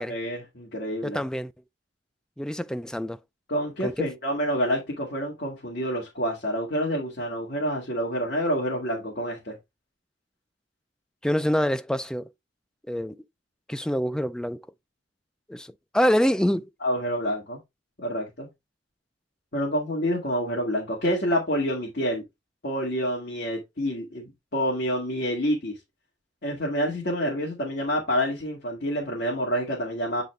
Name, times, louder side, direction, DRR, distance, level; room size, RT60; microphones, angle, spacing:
voice 1, 0.0-1.2 3.5-9.6 16.8-17.6 18.0-18.5 19.5-22.2 22.6-25.8 26.4-30.2, equal, 60° left, 2.0 m, -28 dB
voice 2, 1.0-1.5 2.4-3.2 3.8-3.9 11.2-12.3 12.9-13.2 13.7-14.7 15.5-15.7 15.9-16.7, equal, 5° left, 0.3 m, -25 dB
8.3 x 4.1 x 3.2 m
head